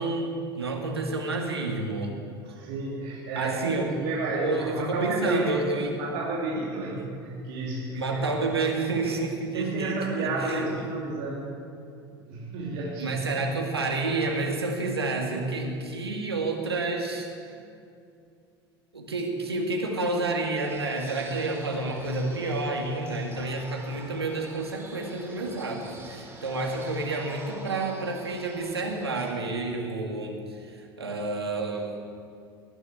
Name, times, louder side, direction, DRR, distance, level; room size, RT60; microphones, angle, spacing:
voice 1, 0.0-2.1 3.4-3.9 4.4-5.9 6.9-7.1 7.9-10.9 13.0-17.3 18.9-31.9, right 3 dB, 85° right, 1 dB, 2.1 m, -29 dB
voice 2, 2.4-5.5 6.0-8.4 9.5-11.6 12.1-13.2, right 2 dB, 60° right, -5 dB, 3.1 m, -31 dB
sound 1, 20.6-29.3, right 2 dB, 20° right, 3.2 m, -46 dB
19.5 x 9.0 x 7.9 m, 2.4 s
figure-of-eight pair, 75°, 13 cm